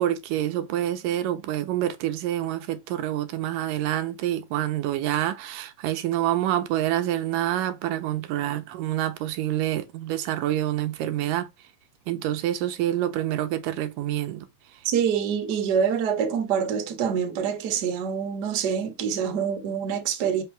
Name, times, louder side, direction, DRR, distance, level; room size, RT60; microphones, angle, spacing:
voice 1, 0.0-11.5 12.1-14.5, right 12 dB, 85° right, 2.4 m, -27 dB
voice 2, 14.8-20.4, right 7 dB, 50° right, 1.2 m, -26 dB
6.3 x 5.5 x 3.4 m
omnidirectional pair, 3.9 m